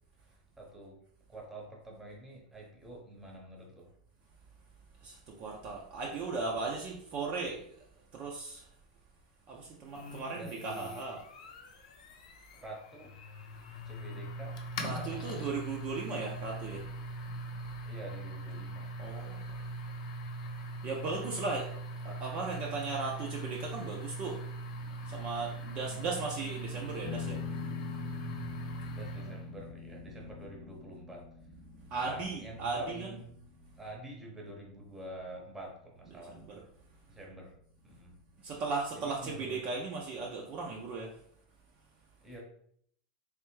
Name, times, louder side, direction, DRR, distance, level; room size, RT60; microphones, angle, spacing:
voice 1, 0.2-1.0 1.3-3.9 10.4-11.0 12.6-13.1 13.8-15.4 17.8-18.9 25.7-26.1 28.9-31.4 32.0-33.2 33.8-36.4 37.1-37.5 37.8-38.2 38.9-39.6 42.2-42.4, right 1 dB, 10° right, -1 dB, 0.9 m, -47 dB
voice 2, 5.0-7.9 8.1-8.7 9.5-11.2 14.8-16.9 19.0-19.6 20.8-29.3 31.7-33.1 36.1-36.6 38.4-41.2, right 4 dB, 35° right, -1 dB, 0.5 m, -37 dB
sound 1, 9.9-29.5, right 1 dB, 75° left, 0.7 m, -41 dB
sound 2, 27.0-36.1, left 10 dB, 40° left, 0.3 m, -45 dB
3.3 x 3.2 x 3.1 m, 0.66 s
supercardioid pair, 150°, 4 cm